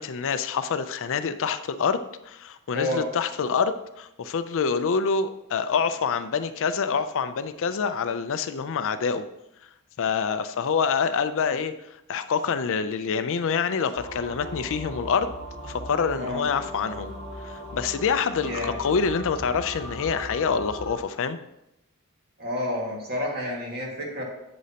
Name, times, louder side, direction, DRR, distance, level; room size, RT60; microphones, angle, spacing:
voice 1, 0.0-2.0 2.3-9.3 10.0-11.7 12.1-15.3 15.6-17.1 17.4-21.4, left 6 dB, 60° left, 11 dB, 0.5 m, -26 dB
voice 2, 2.7-3.0 16.2-16.4 18.4-18.8 22.4-24.2, left 1 dB, 45° right, -2 dB, 2.0 m, -29 dB
sound 1, 13.9-20.9, equal, 75° right, 3.1 m, -38 dB
8.2 x 7.7 x 2.9 m, 0.86 s
head